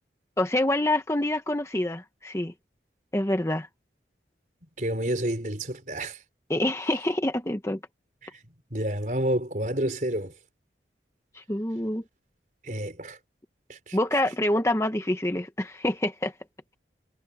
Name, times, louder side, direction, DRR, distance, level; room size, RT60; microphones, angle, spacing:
voice 1, 0.4-2.5 3.1-3.7 6.5-7.8 11.3-12.0 13.9-16.3, left 1 dB, 15° left, 1.0 m, -26 dB
voice 2, 4.8-6.2 8.3-8.4 8.7-10.3 12.6-13.2 13.7-14.0, right 1 dB, 45° right, 4.8 m, -29 dB
head